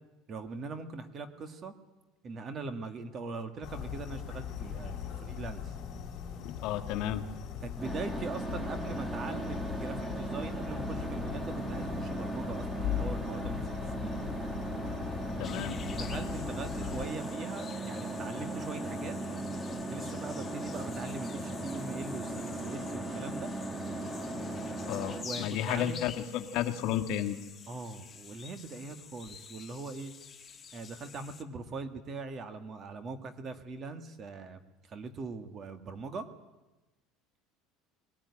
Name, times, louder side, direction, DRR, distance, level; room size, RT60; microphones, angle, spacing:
voice 1, 0.3-1.7 2.2-5.7 7.6-13.7 14.0-14.2 15.9-19.2 19.9-23.5 25.0-26.0 27.7-30.1 30.7-34.6 34.9-36.3, right 4 dB, 30° right, 9 dB, 1.9 m, -41 dB
sound 1, 3.6-17.1, left 9 dB, 40° left, 4.1 m, -40 dB
voice 2, 6.4-7.2 15.4-15.8 24.8-27.4, left 11 dB, 60° left, 7 dB, 1.8 m, -32 dB
sound 2, 7.8-25.2, right 1 dB, 5° right, 2.0 m, -37 dB
sound 3, 15.4-31.4, left 6 dB, 25° left, 1.6 m, -49 dB
22.0 x 18.0 x 9.9 m, 1.1 s
cardioid pair, 145°, 0 cm